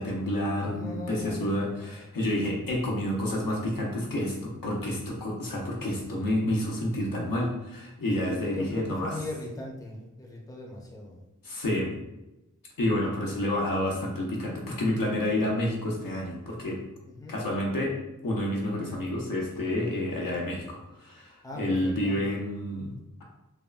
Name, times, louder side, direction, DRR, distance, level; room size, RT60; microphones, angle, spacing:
voice 1, 0.0-9.1 11.4-11.9 12.8-16.8 17.3-17.9 18.2-22.9, left 1 dB, 85° left, -2 dB, 0.7 m, -29 dB
voice 2, 0.6-2.1 8.3-11.2 13.1-13.3 17.0-17.4 21.4-22.2, left 2 dB, 10° left, -2 dB, 0.5 m, -40 dB
3.5 x 2.1 x 2.3 m, 0.98 s
wide cardioid pair, 65°, 33 cm